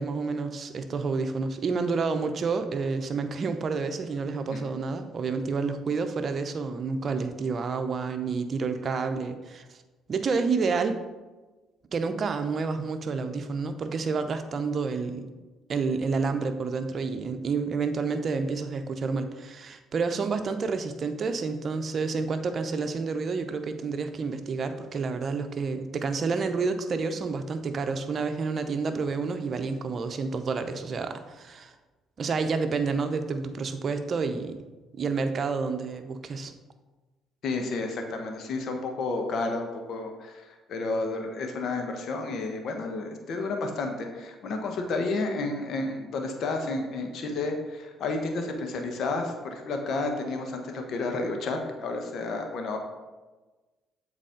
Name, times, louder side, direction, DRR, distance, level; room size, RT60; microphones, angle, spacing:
voice 1, 0.0-9.6 10.1-11.0 11.9-15.3 15.7-31.7 32.2-34.7 34.9-36.5, right 4 dB, 50° right, 8 dB, 0.7 m, -29 dB
voice 2, 37.4-52.8, left 3 dB, 60° left, 4 dB, 1.1 m, -31 dB
7.5 x 4.1 x 5.0 m, 1.2 s
hypercardioid pair, 55°, 0 cm